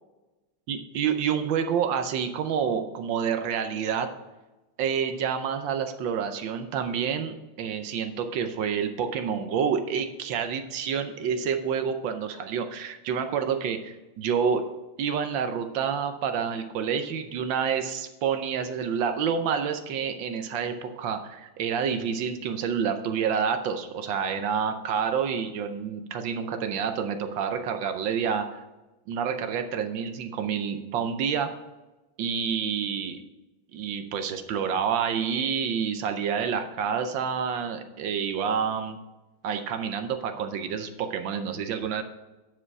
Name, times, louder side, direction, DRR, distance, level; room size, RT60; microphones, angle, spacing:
voice 1, 0.7-4.1 4.8-14.6 15.0-28.6 29.1-31.5 32.2-33.2 33.7-39.0 39.4-42.0, right 7 dB, 70° right, 8 dB, 1.3 m, -28 dB
10.0 x 4.9 x 4.7 m, 1.1 s
omnidirectional pair, 2.4 m